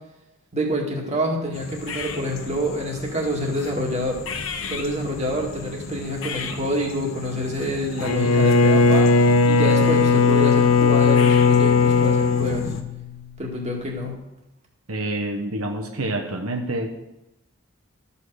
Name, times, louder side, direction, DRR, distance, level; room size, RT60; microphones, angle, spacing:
voice 1, 0.5-4.2 4.7-9.1 9.5-12.7 13.4-14.1, equal, 30° right, 0 dB, 2.1 m, -27 dB
sound 1, 1.5-12.8, left 3 dB, 65° left, 1.0 m, -35 dB
Bowed string instrument, 8.0-13.3, left 4 dB, 85° left, 0.9 m, -17 dB
voice 2, 14.9-17.0, right 1 dB, 75° right, 3 dB, 1.1 m, -27 dB
13.5 x 5.7 x 6.4 m, 0.90 s
head